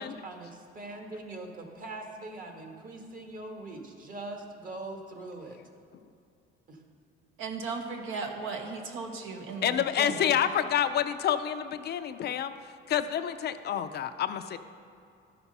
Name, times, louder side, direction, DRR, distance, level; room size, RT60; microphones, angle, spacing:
voice 1, 0.0-5.6 6.7-6.8, right 2 dB, 40° right, 3 dB, 1.4 m, -42 dB
voice 2, 7.4-10.3, right 4 dB, 75° right, 3 dB, 1.3 m, -36 dB
voice 3, 9.6-12.5 12.9-14.6, left 9 dB, 50° left, 9 dB, 0.5 m, -28 dB
13.0 x 5.9 x 5.4 m, 2.5 s
cardioid pair, 120°, 21 cm